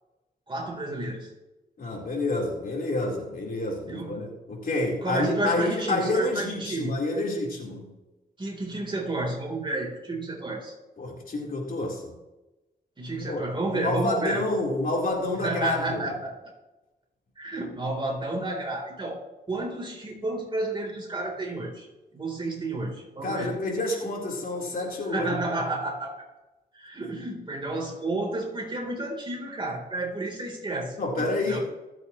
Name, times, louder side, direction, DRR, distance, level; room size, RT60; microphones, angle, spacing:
voice 1, 0.5-1.3 3.9-4.2 5.0-6.9 8.4-10.7 13.0-14.4 15.4-16.5 17.4-19.2 19.5-21.9 22.1-23.5 25.1-26.1 26.7-31.6, right 2 dB, 30° right, 0 dB, 3.7 m, -31 dB
voice 2, 1.8-8.0 11.0-12.2 13.3-13.4 13.7-16.2 23.2-25.3 31.0-31.6, left 2 dB, 55° left, -2 dB, 4.1 m, -28 dB
25.5 x 8.6 x 3.2 m, 1.0 s
wide cardioid pair, 105°, 17 cm